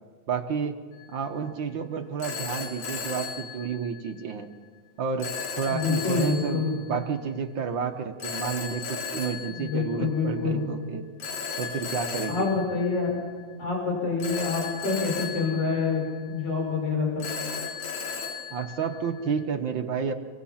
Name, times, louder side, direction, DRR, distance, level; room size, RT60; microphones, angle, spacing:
voice 1, 0.3-0.8 1.1-4.5 5.0-11.0 11.6-12.5 18.5-20.1, right 6 dB, 55° right, 5 dB, 1.4 m, -30 dB
Telephone, 0.9-1.3 2.2-4.2 5.2-6.9 8.2-10.4 11.2-13.5 14.2-16.5 17.2-19.4, left 6 dB, 75° left, 3.7 m, -36 dB
voice 2, 5.7-6.8 9.5-10.6 12.3-13.1 13.6-16.0 16.3-17.3, left 4 dB, 55° left, -1 dB, 7.0 m, -27 dB
27.5 x 23.5 x 5.8 m, 1.5 s
omnidirectional pair, 3.3 m